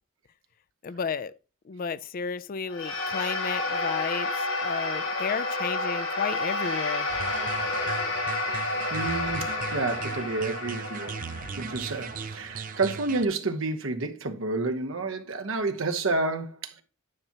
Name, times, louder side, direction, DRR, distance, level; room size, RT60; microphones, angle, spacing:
voice 1, 0.8-1.3 1.7-7.1, left 6 dB, 40° left, 0.3 m, -32 dB
sound 1, 2.7-13.2, left 2 dB, 75° left, 2.4 m, -31 dB
sound 2, 7.1-13.3, right 6 dB, 40° right, 0.4 m, -37 dB
voice 2, 8.9-16.8, right 3 dB, 70° right, 0.9 m, -30 dB
9.7 x 5.8 x 2.8 m
head